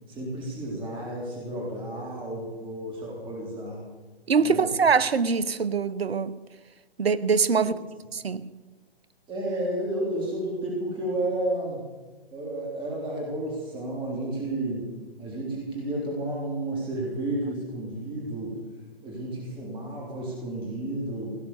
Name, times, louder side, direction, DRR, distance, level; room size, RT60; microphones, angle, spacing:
voice 1, 0.1-3.8 4.4-4.7 7.6-7.7 9.3-11.8 12.3-14.9 15.2-18.6 19.0-21.3, right 1 dB, 15° right, 3.7 m, -31 dB
voice 2, 4.3-6.3 7.0-7.7 8.1-8.5, right 5 dB, 75° right, 0.9 m, -23 dB
17.5 x 10.5 x 6.9 m
figure-of-eight pair, 130°, 31 cm